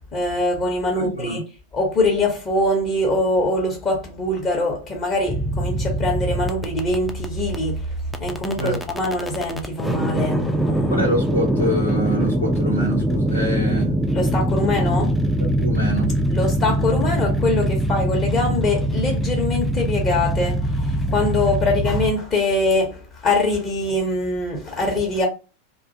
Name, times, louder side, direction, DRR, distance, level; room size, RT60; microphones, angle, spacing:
voice 1, 0.1-1.4 1.7-7.8 8.2-11.0 14.1-15.2 16.3-25.3, left 2 dB, 30° left, 0.8 m, -23 dB
voice 2, 0.9-1.4 8.6-8.8 10.9-13.9 15.6-16.1, equal, 85° left, 0.8 m, -25 dB
sound 1, 5.3-22.1, right 1 dB, ahead, 0.4 m, -23 dB
2.4 x 2.2 x 2.7 m
figure-of-eight pair, 90°, 0 cm